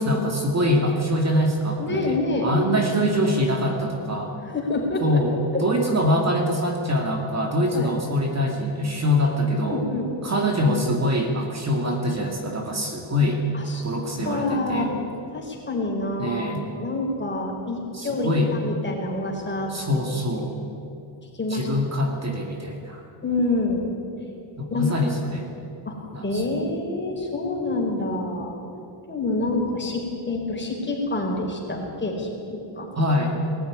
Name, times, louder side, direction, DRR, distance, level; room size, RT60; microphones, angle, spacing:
voice 1, 0.0-4.3 5.0-9.8 10.2-13.4 13.8-14.9 16.2-16.6 17.9-18.5 19.7-20.6 21.5-23.0 24.6-25.5 26.1-26.6 32.9-33.4, equal, 35° right, 2 dB, 2.3 m, -24 dB
voice 2, 1.8-2.5 4.5-5.2 5.5-5.6 7.7-7.9 9.6-10.1 13.5-13.9 14.2-15.0 15.3-19.7 21.3-21.7 23.2-23.9 24.7-24.9 25.8-25.9 26.2-28.5 29.1-33.0, left 2 dB, 25° left, -1 dB, 4.7 m, -27 dB
20.5 x 14.0 x 10.0 m, 2.7 s
cardioid pair, 130°, 47 cm